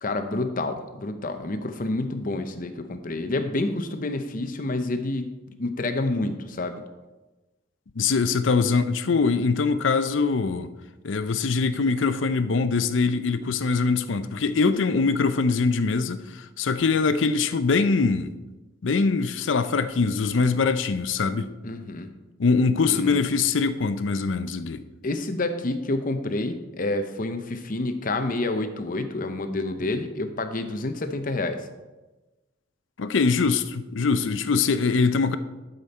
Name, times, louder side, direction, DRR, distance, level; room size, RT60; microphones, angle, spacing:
voice 1, 0.0-5.3 5.6-6.8 21.6-22.1 22.9-23.3 25.0-31.6, left 2 dB, 45° left, 0.7 m, -28 dB
voice 2, 8.0-10.7 11.0-18.3 18.8-21.5 22.4-24.8 33.0-35.4, left 4 dB, 80° left, 0.6 m, -23 dB
12.0 x 5.2 x 4.2 m
head